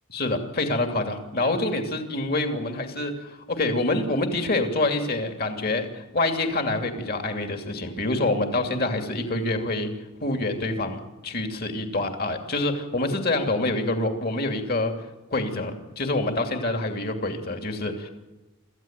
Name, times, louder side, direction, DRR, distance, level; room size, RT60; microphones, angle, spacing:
voice 1, 0.1-9.9 10.2-14.9 15.3-18.1, left 2 dB, 45° left, 5 dB, 2.8 m, -26 dB
26.0 x 14.5 x 9.0 m, 1.1 s
head